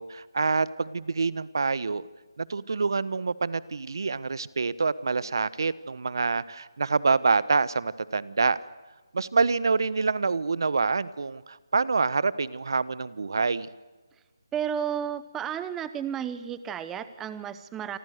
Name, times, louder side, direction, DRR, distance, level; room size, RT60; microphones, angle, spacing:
voice 1, 0.0-2.0 2.4-8.6 9.1-13.7, right 4 dB, 60° right, 17 dB, 1.3 m, -26 dB
voice 2, 14.5-18.0, right 8 dB, 10° right, 13 dB, 0.9 m, -32 dB
28.5 x 25.0 x 6.8 m, 1.3 s
figure-of-eight pair, 165°, 2 cm